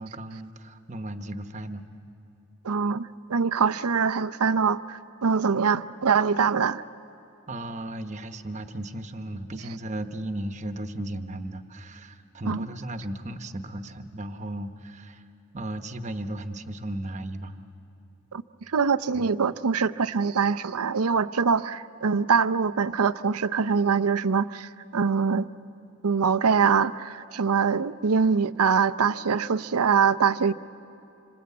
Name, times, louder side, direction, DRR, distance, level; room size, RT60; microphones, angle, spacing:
voice 1, 0.0-1.8 7.5-15.2 15.5-17.6 19.1-19.3, right 1 dB, 30° right, 8 dB, 1.0 m, -35 dB
voice 2, 2.6-6.8 12.5-12.6 18.3-18.4 18.7-25.5 26.0-30.5, right 6 dB, 85° right, 13 dB, 0.6 m, -23 dB
27.0 x 26.0 x 8.4 m, 2.9 s
head